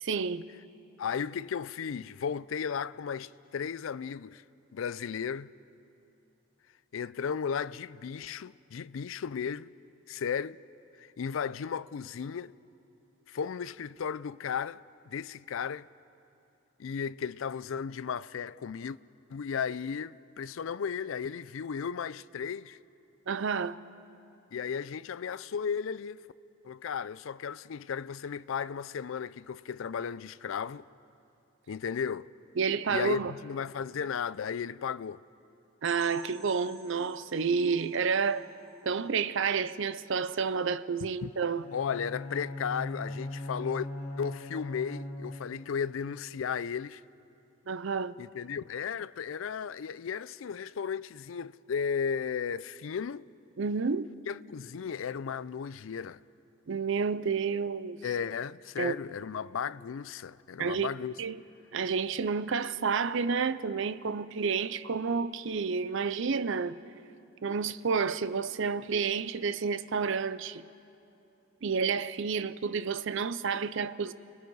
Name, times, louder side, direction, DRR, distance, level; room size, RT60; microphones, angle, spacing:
voice 1, 0.0-0.4 23.3-23.8 32.6-33.3 35.8-38.5 38.8-41.6 47.7-48.2 53.6-54.1 56.7-58.0 58.8-58.9 60.6-60.9 61.2-61.4 61.7-66.8 67.4-70.6 71.6-74.1, right 5 dB, 60° right, 0.5 m, -30 dB
voice 2, 1.0-4.4 4.7-5.5 6.9-9.7 10.1-10.6 11.0-12.5 13.3-15.9 16.8-19.0 19.3-22.8 24.5-26.2 26.6-30.8 31.7-32.3 32.9-35.2 41.2-41.3 41.7-43.9 44.2-47.0 48.2-53.3 54.3-56.2 58.0-61.1, left 7 dB, 70° left, 0.4 m, -35 dB
sound 1, 35.8-39.5 39.8-40.0 40.4-40.5 41.0-41.1, right 3 dB, 35° right, 3.4 m, -53 dB
Bowed string instrument, 41.3-45.5, left 1 dB, 35° left, 6.4 m, -40 dB
30.0 x 19.5 x 4.7 m
head